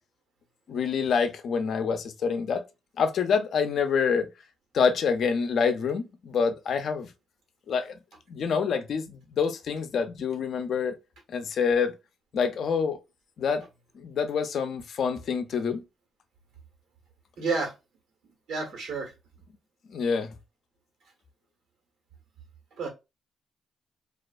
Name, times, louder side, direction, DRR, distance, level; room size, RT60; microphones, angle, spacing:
voice 1, 0.7-2.6 3.0-4.3 4.7-7.1 7.7-8.0 8.3-10.9 11.3-11.9 12.3-13.0 13.4-13.6 14.0-15.8 19.9-20.3, left 6 dB, 65° left, 0.5 m, -26 dB
voice 2, 17.4-17.7 18.5-19.1 22.8-22.9, right 4 dB, 80° right, 1.1 m, -30 dB
2.4 x 2.3 x 2.4 m
cardioid pair, 65°, 0 cm